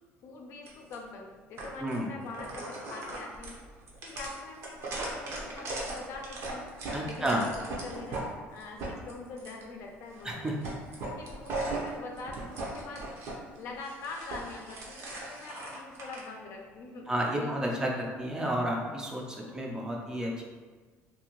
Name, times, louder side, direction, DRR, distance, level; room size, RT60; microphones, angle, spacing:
voice 1, 0.2-3.6 4.0-6.7 7.0-10.7 11.0-13.1 13.6-17.5 19.4-19.7, left 3 dB, 60° left, 1 dB, 0.5 m, -44 dB
sound 1, 0.6-0.9 1.6-2.0 2.3-8.3 8.6-9.6 10.1-10.3 10.6-13.3 13.7-16.2, right 2 dB, 60° right, 0.7 m, -38 dB
voice 2, 6.9-7.5 10.2-10.6 17.1-20.4, right 1 dB, 15° right, -1 dB, 0.4 m, -31 dB
2.8 x 2.6 x 2.9 m, 1.4 s
cardioid pair, 130°, 5 cm